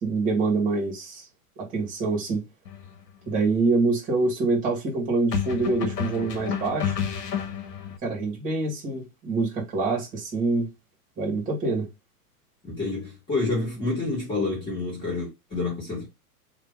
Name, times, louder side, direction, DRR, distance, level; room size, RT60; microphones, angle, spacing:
voice 1, 0.0-1.2 1.6-2.4 3.3-6.9 8.0-10.7 11.2-11.9, right 3 dB, 15° right, 1.4 m, -25 dB
sound 1, 2.7-2.9 5.3-8.0, left 7 dB, 85° left, 1.2 m, -30 dB
voice 2, 12.6-16.1, left 3 dB, 10° left, 1.4 m, -28 dB
2.8 x 2.7 x 3.6 m
hypercardioid pair, 150°, 47 cm